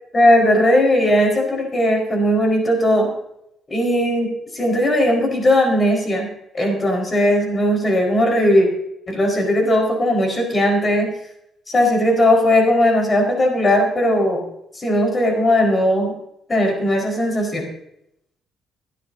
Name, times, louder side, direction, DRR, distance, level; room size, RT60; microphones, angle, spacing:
voice 1, 0.1-3.1 3.7-6.3 6.5-8.7 9.1-11.1 11.7-14.4 14.7-16.1 16.5-17.6, left 1 dB, 30° left, 1 dB, 4.8 m, -17 dB
22.0 x 10.0 x 2.8 m, 0.78 s
cardioid pair, 90°, 0 cm